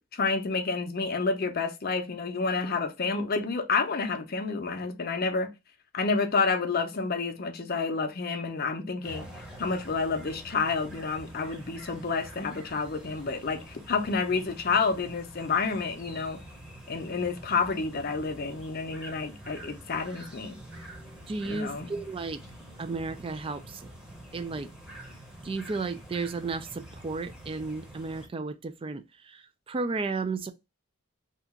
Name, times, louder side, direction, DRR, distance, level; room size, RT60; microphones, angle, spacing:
voice 1, 0.1-5.5 5.9-9.3 9.6-16.4 16.9-20.6 21.4-22.0, left 4 dB, 45° left, 0.6 m, -29 dB
sound 1, 9.0-28.3, right 1 dB, 5° right, 0.8 m, -47 dB
voice 2, 21.3-22.4 22.8-23.9 24.3-24.7 25.4-30.5, right 3 dB, 25° right, 0.3 m, -33 dB
2.8 x 2.4 x 3.6 m
head